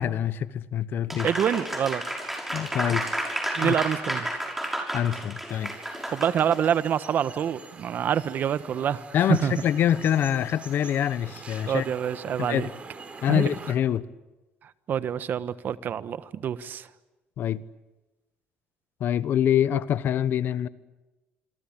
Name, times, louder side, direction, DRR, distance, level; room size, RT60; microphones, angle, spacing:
voice 1, 0.0-1.3 2.5-3.1 3.6-3.7 4.9-5.7 9.1-11.8 12.4-12.7 13.2-14.0 17.4-17.6 19.0-20.7, left 10 dB, 60° left, 16 dB, 1.1 m, -25 dB
Applause, 1.1-6.7, right 1 dB, 5° right, 6.4 m, -31 dB
voice 2, 1.2-2.0 3.6-4.3 6.1-9.5 11.7-12.7 13.3-13.5 14.9-16.9, right 9 dB, 55° right, 14 dB, 1.3 m, -26 dB
sound 1, 5.5-13.7, right 4 dB, 35° right, 4.3 m, -45 dB
27.0 x 23.0 x 8.9 m, 1.1 s
cardioid pair, 95°, 4 cm